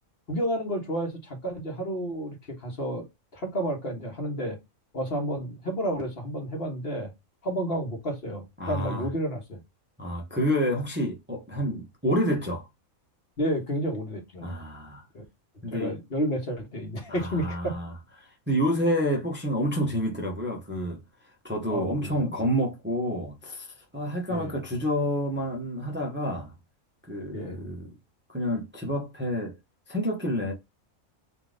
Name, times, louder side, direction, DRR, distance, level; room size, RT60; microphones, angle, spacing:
voice 1, 0.3-3.0 3.3-4.6 4.9-7.1 7.4-9.6 13.4-14.5 15.1-15.2 15.7-17.8 21.7-22.3 24.3-24.5 27.3-27.6, equal, 45° left, 1.4 m, -31 dB
voice 2, 8.6-9.1 10.0-12.7 14.4-15.0 15.6-15.9 17.1-17.9 18.2-21.0 21.4-26.5 27.1-27.9 28.3-29.5 29.9-30.5, equal, 10° right, 0.9 m, -28 dB
3.6 x 2.9 x 3.8 m
omnidirectional pair, 1.4 m